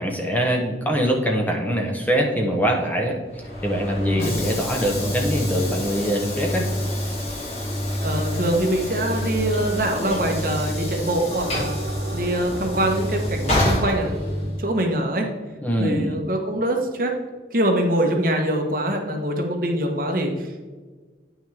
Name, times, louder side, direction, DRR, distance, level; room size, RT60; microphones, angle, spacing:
voice 1, 0.0-3.2 3.6-6.7 15.6-16.2, equal, 10° left, 1 dB, 0.8 m, -23 dB
Train / Sliding door, 3.3-14.7, left 1 dB, 35° left, 1.9 m, -27 dB
voice 2, 4.1-4.4 8.0-11.8 12.1-15.3 15.8-17.1 17.5-20.6, right 1 dB, 50° right, 2 dB, 1.2 m, -24 dB
sound 1, 11.3-14.6, right 4 dB, 85° right, 0.7 m, -39 dB
9.3 x 6.2 x 3.4 m, 1.4 s
head